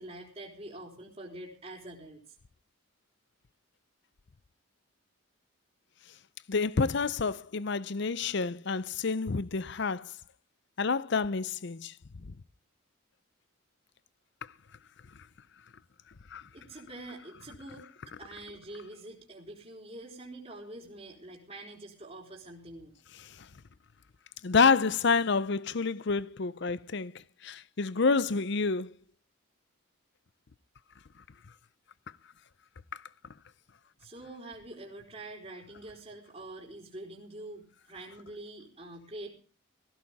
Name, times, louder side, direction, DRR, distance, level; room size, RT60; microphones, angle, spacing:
voice 1, 0.0-2.4 16.5-17.8 18.2-22.9 34.0-39.3, right 1 dB, 30° right, 3.7 m, -45 dB
voice 2, 6.5-10.1 10.8-11.9 12.2-12.3 16.3-16.4 23.2-23.5 24.4-27.1 27.4-28.9 32.9-33.0, left 4 dB, 55° left, 0.6 m, -28 dB
18.0 x 16.0 x 3.6 m
head